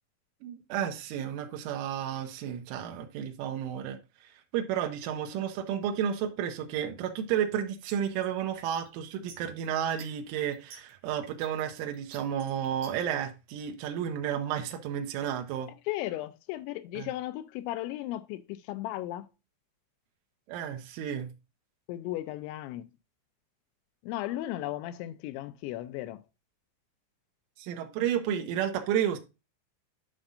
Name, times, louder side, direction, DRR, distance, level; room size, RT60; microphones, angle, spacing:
voice 1, 0.4-4.0 4.5-15.7 17.0-17.1 20.5-21.3 27.6-29.2, right 9 dB, 85° right, 3.6 m, -32 dB
sound 1, 7.5-13.1, right 6 dB, 60° right, 2.5 m, -50 dB
voice 2, 15.9-19.3 21.9-22.9 24.0-26.2, left 15 dB, 85° left, 2.7 m, -35 dB
11.5 x 5.3 x 2.5 m
omnidirectional pair, 5.7 m